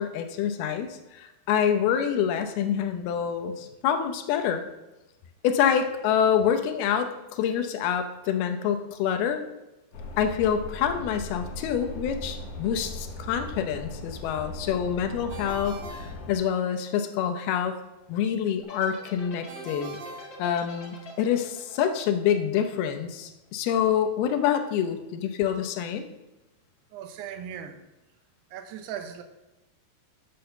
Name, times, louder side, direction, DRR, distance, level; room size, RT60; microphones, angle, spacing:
voice 1, 0.0-4.6 5.4-9.4 10.2-17.8 18.1-20.0 20.4-26.1, left 8 dB, 80° left, 7 dB, 2.7 m, -26 dB
sound 1, 9.9-16.3, left 2 dB, 60° left, 1.7 m, -39 dB
Ringtone, 15.3-17.0 19.5-21.2, right 3 dB, 55° right, 2.2 m, -43 dB
sound 2, 18.6-23.0, left 4 dB, 40° left, 1.7 m, -45 dB
voice 2, 26.9-27.8 28.5-29.2, right 9 dB, 85° right, 8 dB, 3.0 m, -38 dB
8.3 x 7.0 x 6.7 m, 1.0 s
omnidirectional pair, 4.6 m